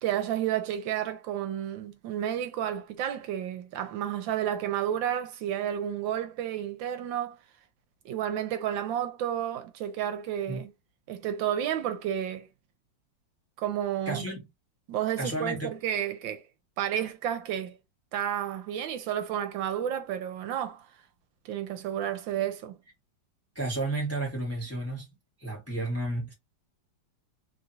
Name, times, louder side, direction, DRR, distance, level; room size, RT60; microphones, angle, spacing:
voice 1, 0.0-7.4 8.0-10.7 11.1-12.5 13.6-14.3 14.9-16.4 16.8-17.8 18.1-20.9 21.4-22.7, right 10 dB, 80° right, 1.4 m, -31 dB
voice 2, 14.0-14.5 15.2-15.7 23.5-25.1 25.4-26.3, right 2 dB, 10° left, 0.9 m, -32 dB
3.3 x 2.4 x 2.7 m
omnidirectional pair, 2.1 m